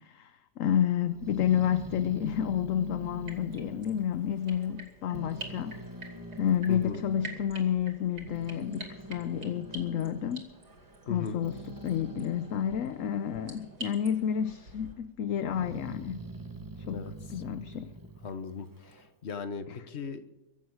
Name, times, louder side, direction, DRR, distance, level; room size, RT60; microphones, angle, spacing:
voice 1, 0.0-5.8 6.4-10.5 11.1-16.3 16.9-18.0 19.7-19.8, left 9 dB, 60° left, 0.9 m, -30 dB
Growling, 1.0-4.8 5.1-7.4 8.0-13.8 14.2-14.9 15.3-19.1, right 2 dB, 15° right, 0.7 m, -45 dB
sound 1, 3.2-14.9, right 3 dB, 65° right, 3.2 m, -48 dB
voice 2, 6.7-7.0 11.1-11.4 16.9-17.1 18.2-20.3, left 5 dB, 45° left, 1.3 m, -38 dB
23.5 x 8.0 x 6.5 m
omnidirectional pair, 1.8 m